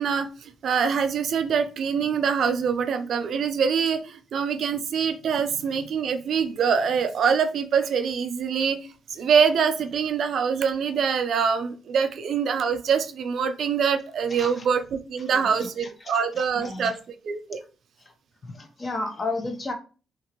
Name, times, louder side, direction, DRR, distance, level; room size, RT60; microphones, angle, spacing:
voice 1, 0.0-8.8 9.1-16.9 17.2-17.6, right 6 dB, 55° right, 8 dB, 0.3 m, -24 dB
voice 2, 14.3-14.6 15.3-17.0 18.1-18.2 18.4-19.7, left 2 dB, 25° left, 5 dB, 0.5 m, -34 dB
2.9 x 2.6 x 2.8 m, 0.35 s
wide cardioid pair, 175°, 0 cm